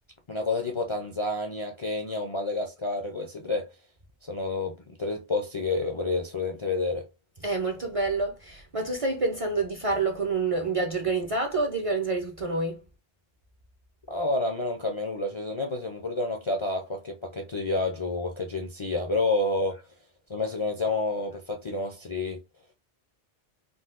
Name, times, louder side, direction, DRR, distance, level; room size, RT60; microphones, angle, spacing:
voice 1, 0.3-3.7 4.2-7.0 14.1-19.8 20.3-22.4, left 2 dB, 40° left, 0.4 m, -29 dB
voice 2, 7.4-12.8, right 3 dB, 40° right, 0.5 m, -28 dB
3.8 x 2.3 x 2.4 m
omnidirectional pair, 1.2 m